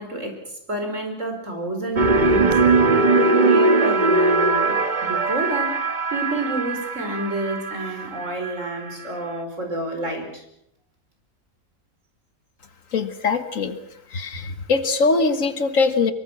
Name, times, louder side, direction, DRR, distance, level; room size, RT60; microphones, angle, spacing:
voice 1, 0.0-10.4, right 1 dB, 60° right, 4 dB, 5.3 m, -29 dB
sound 1, 2.0-8.9, right 3 dB, 35° right, 1.4 m, -20 dB
voice 2, 12.9-13.8 14.1-16.1, left 4 dB, 70° left, 10 dB, 1.9 m, -22 dB
24.5 x 23.5 x 6.2 m, 0.76 s
omnidirectional pair, 1.5 m